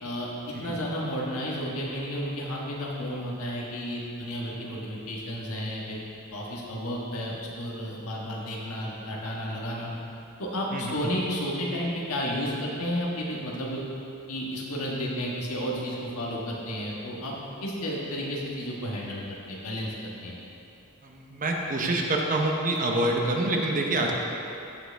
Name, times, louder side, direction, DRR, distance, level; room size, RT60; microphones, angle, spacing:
voice 1, 0.0-6.0 6.3-9.9 10.4-13.8 14.3-17.3 17.6-19.2 19.5-19.9 20.2-20.4 24.0-24.1, equal, 90° left, -3 dB, 1.5 m, -32 dB
voice 2, 10.7-11.1 21.0-24.1, right 2 dB, 35° right, 1 dB, 0.8 m, -27 dB
13.5 x 5.0 x 3.4 m, 2.7 s
head